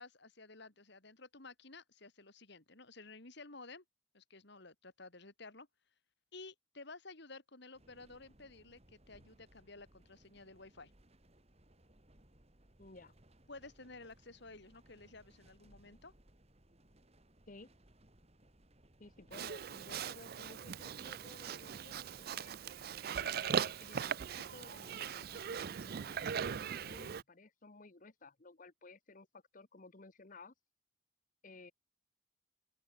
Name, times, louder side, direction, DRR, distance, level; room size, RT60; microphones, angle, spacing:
voice 1, 0.0-3.8 4.1-5.7 6.3-10.9 13.5-16.1, left 3 dB, 55° left, 2.7 m, -53 dB
sound 1, 7.7-27.1, right 1 dB, 30° right, 2.8 m, -65 dB
voice 2, 12.8-13.1 17.5-17.7 19.0-22.5 23.1-30.5 31.4-31.7, left 3 dB, 40° left, 1.1 m, -56 dB
Livestock farm animals working animals, 19.3-27.2, right 7 dB, 50° right, 0.4 m, -40 dB
open air
head